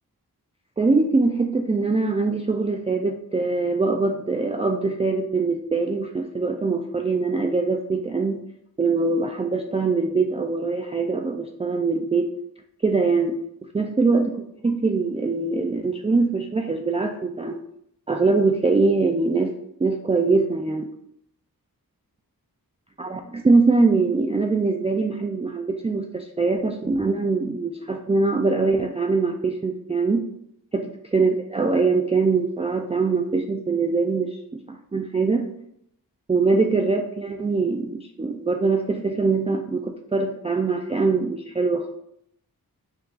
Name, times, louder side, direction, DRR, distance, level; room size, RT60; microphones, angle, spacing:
voice 1, 0.8-8.4 8.8-12.3 12.8-13.4 13.7-17.6 18.1-19.5 19.8-20.9 23.0-30.2 30.7-35.5 36.3-41.9, right 3 dB, 20° right, 4 dB, 0.3 m, -23 dB
5.3 x 2.3 x 3.8 m, 0.75 s
wide cardioid pair, 60°, 37 cm